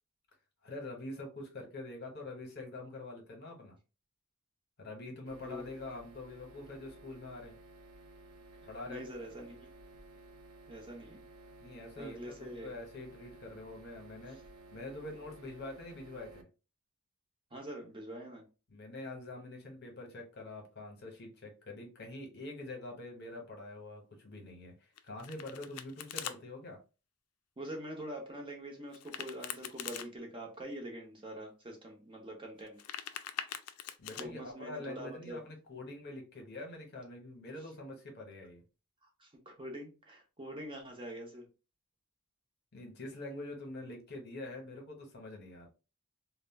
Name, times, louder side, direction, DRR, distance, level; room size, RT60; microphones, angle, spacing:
voice 1, 0.6-3.8 4.8-7.6 8.7-9.1 11.6-14.4 14.7-16.5 18.7-26.8 34.0-38.6 42.7-45.7, left 2 dB, 45° left, 0.8 m, -45 dB
sound 1, 5.3-16.4, right 2 dB, 75° right, 0.5 m, -55 dB
voice 2, 8.9-9.7 10.7-11.2 12.0-12.7 17.5-18.4 27.6-32.8 34.2-35.4 39.2-41.5, right 1 dB, 20° right, 0.7 m, -44 dB
Domestic sounds home sounds, 25.0-26.4 28.9-30.1 32.6-34.2, left 10 dB, 75° left, 0.3 m, -42 dB
2.3 x 2.1 x 3.3 m
head